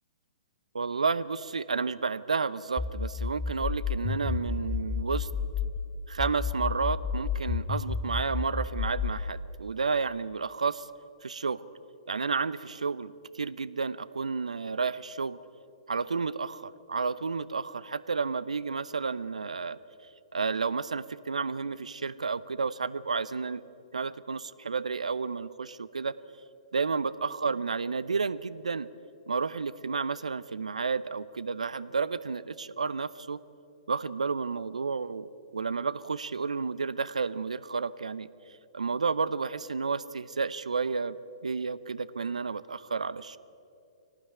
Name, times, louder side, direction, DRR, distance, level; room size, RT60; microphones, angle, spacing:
voice 1, 0.7-5.3 6.1-10.9 11.2-11.6 12.1-15.4 15.9-19.8 20.3-23.6 23.9-26.2 26.7-28.9 29.3-33.4 33.9-38.3 38.7-41.2 41.4-43.4, right 4 dB, 75° right, 17 dB, 0.8 m, -31 dB
sound 1, 2.8-5.8 6.2-9.2, left 6 dB, 15° left, 1.1 m, -31 dB
24.5 x 18.0 x 9.1 m, 2.6 s
figure-of-eight pair, 120°, 4 cm